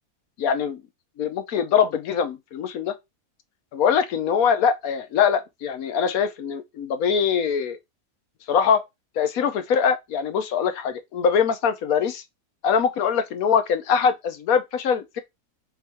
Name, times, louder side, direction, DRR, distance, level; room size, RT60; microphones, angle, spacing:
voice 1, 0.4-0.8 1.2-3.0 3.7-7.8 8.5-8.8 9.2-12.2 12.6-15.2, left 7 dB, 80° left, 1.2 m, -22 dB
3.8 x 3.1 x 4.2 m
omnidirectional pair, 1.5 m